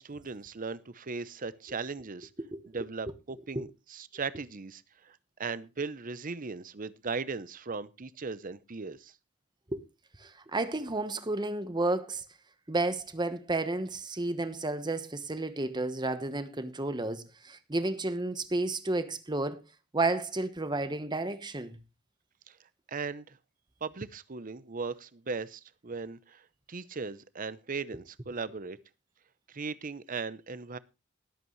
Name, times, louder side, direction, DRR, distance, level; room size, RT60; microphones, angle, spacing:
voice 1, 0.0-2.3 2.7-9.1 22.5-22.6 22.9-23.4 23.8-26.4 26.7-28.8 29.5-30.8, right 4 dB, 40° right, 0.7 m, -38 dB
voice 2, 10.2-12.2 12.7-19.6 19.9-21.8, right 2 dB, 20° right, 1.1 m, -32 dB
20.0 x 8.2 x 3.1 m
head